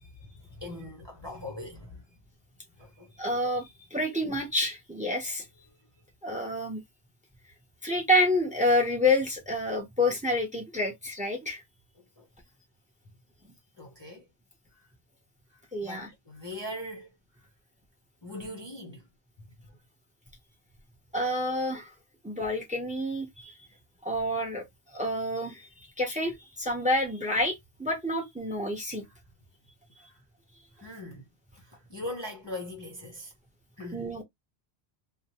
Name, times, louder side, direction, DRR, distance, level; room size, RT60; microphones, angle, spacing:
voice 1, 0.0-2.0 2.8-3.1 5.7-5.8 12.2-12.3 13.8-14.3 15.5-17.1 17.4-17.5 18.2-19.0 30.0-30.2 30.8-31.3 31.6-33.3 33.8-34.1, left 1 dB, 30° left, 0.6 m, -41 dB
voice 2, 3.2-5.4 6.2-6.8 7.8-11.6 15.7-16.1 21.1-21.9 22.2-23.5 24.0-24.6 24.9-29.0 33.9-34.2, left 1 dB, 10° right, 0.7 m, -28 dB
2.8 x 2.1 x 2.8 m
omnidirectional pair, 1.1 m